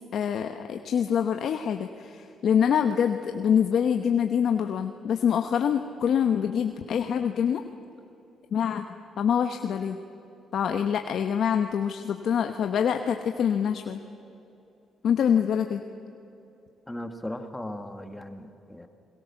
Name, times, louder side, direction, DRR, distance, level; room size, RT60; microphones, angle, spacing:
voice 1, 0.1-7.6 8.5-8.8 9.2-10.0 10.5-14.0 15.0-15.8, left 8 dB, 65° left, 6 dB, 1.2 m, -25 dB
voice 2, 16.9-18.9, left 1 dB, 10° left, 6 dB, 2.0 m, -37 dB
28.5 x 22.0 x 7.2 m, 2.8 s
cardioid pair, 90°, 0 cm